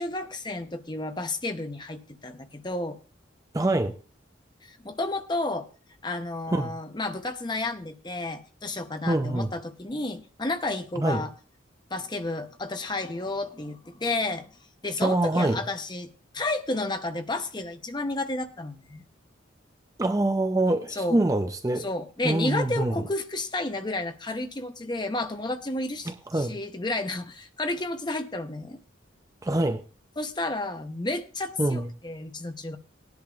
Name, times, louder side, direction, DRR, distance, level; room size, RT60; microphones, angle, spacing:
voice 1, 0.0-3.0 4.6-5.7 6.0-11.3 11.9-14.5 14.8-19.0 20.9-21.2 21.8-28.8 30.2-32.8, left 2 dB, 20° left, 0.7 m, -31 dB
voice 2, 3.5-3.9 6.5-6.7 9.1-9.5 11.0-11.2 15.0-15.6 20.0-21.9 22.2-23.0 26.1-26.6 29.4-29.8 31.6-31.9, right 2 dB, 15° right, 0.4 m, -25 dB
18.0 x 10.5 x 2.4 m
head